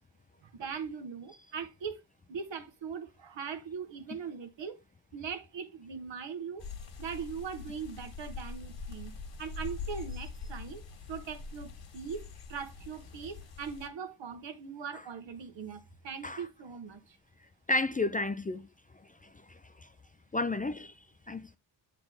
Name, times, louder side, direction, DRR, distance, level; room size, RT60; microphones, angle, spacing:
voice 1, 0.4-2.0 2.3-4.8 5.1-6.6 7.0-10.8 11.1-17.2, right 6 dB, 70° right, 1.3 m, -40 dB
sound 1, 6.6-13.9, left 4 dB, 70° left, 1.8 m, -43 dB
voice 2, 17.7-18.7 19.5-19.6 20.3-20.9 21.3-21.5, left 2 dB, 20° left, 0.4 m, -31 dB
7.7 x 4.1 x 3.5 m
cardioid pair, 80°, 45 cm